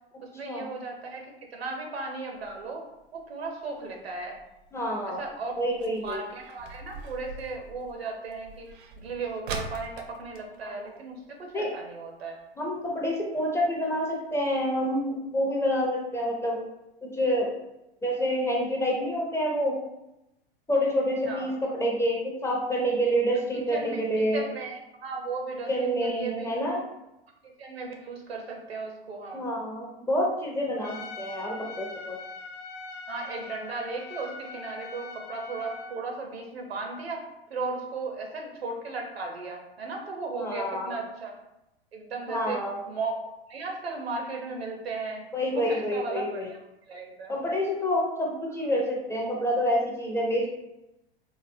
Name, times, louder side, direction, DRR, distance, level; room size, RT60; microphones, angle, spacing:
voice 1, 0.2-2.8 3.1-4.4 5.2-5.6 6.0-8.7 9.0-12.4 21.2-21.5 23.5-24.0 24.3-26.5 27.6-29.5 33.1-41.4 41.9-43.1 43.5-45.3 45.6-46.6 46.9-47.4, right 3 dB, 85° right, 2 dB, 0.8 m, -36 dB
sound 1, 2.3-11.6 11.9-12.0 12.3-12.6 13.1-13.2 13.8-13.9 14.2-14.3 14.6-14.7, right 4 dB, 60° right, 0.5 m, -43 dB
voice 2, 4.7-5.2 5.6-6.2 10.6-10.8 11.5-11.7 12.6-16.6 17.0-17.5 18.0-19.8 20.7-24.4 25.7-26.8 29.3-32.2 40.4-41.0 42.3-42.9 45.3-46.5 47.3-50.5, equal, 10° left, -2 dB, 0.4 m, -28 dB
Trumpet, 30.8-36.0, left 3 dB, 65° left, 0.6 m, -42 dB
3.8 x 2.0 x 2.6 m, 0.90 s
hypercardioid pair, 100°, 30 cm